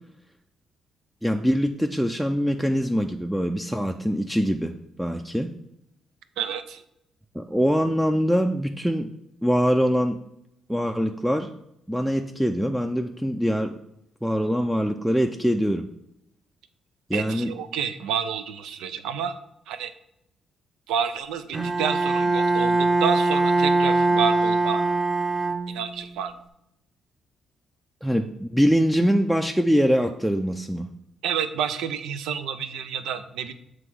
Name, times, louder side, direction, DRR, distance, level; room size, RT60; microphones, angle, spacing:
voice 1, 1.2-5.5 7.3-9.1 9.4-10.2 10.7-11.5 11.9-13.8 14.2-15.9 17.1-17.5 28.0-30.9, equal, ahead, 4 dB, 0.4 m, -23 dB
voice 2, 6.4-6.8 17.1-19.4 19.7-19.9 20.9-24.8 25.7-26.3 31.2-33.5, right 7 dB, 90° right, 10 dB, 0.5 m, -29 dB
Bowed string instrument, 21.5-26.1, right 2 dB, 25° right, 0.9 m, -22 dB
7.8 x 3.0 x 6.0 m, 0.80 s
cardioid pair, 90°, 0 cm